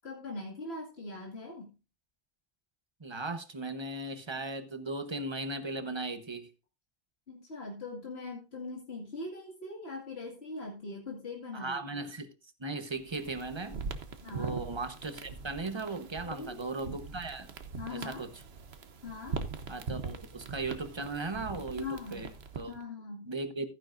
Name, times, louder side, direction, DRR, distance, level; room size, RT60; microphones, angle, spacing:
voice 1, 0.0-1.7 7.3-12.0 14.2-14.5 16.2-17.0 17.8-18.2 19.0-19.4 21.8-22.2 22.7-23.3, left 3 dB, 90° left, 2.4 m, -41 dB
voice 2, 3.0-6.5 11.5-12.3 12.6-13.8 14.3-17.5 17.9-18.3 19.7-22.7 23.3-23.7, right 3 dB, 30° right, 1.1 m, -37 dB
sound 1, 13.0-22.8, right 5 dB, 90° right, 1.3 m, -42 dB
14.5 x 10.0 x 2.6 m
omnidirectional pair, 1.0 m